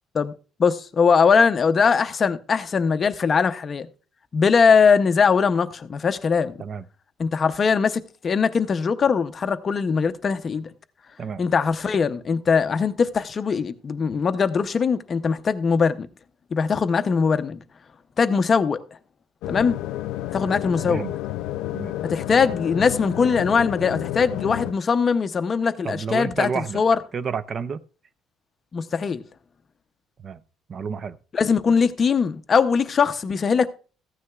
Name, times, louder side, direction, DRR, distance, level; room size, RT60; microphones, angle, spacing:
voice 1, 0.6-3.9 4.3-6.5 7.2-10.7 11.4-16.1 16.5-17.6 18.2-18.8 19.5-19.8 20.3-21.0 22.0-27.0 28.7-29.2 31.3-33.7, left 5 dB, 30° left, 0.5 m, -21 dB
sound 1, 19.4-24.7, left 14 dB, 85° left, 0.3 m, -30 dB
voice 2, 25.8-26.8 27.1-27.8 30.2-30.4 30.7-31.2, right 6 dB, 35° right, 0.4 m, -30 dB
15.0 x 9.6 x 2.3 m
cardioid pair, 160°, 0 cm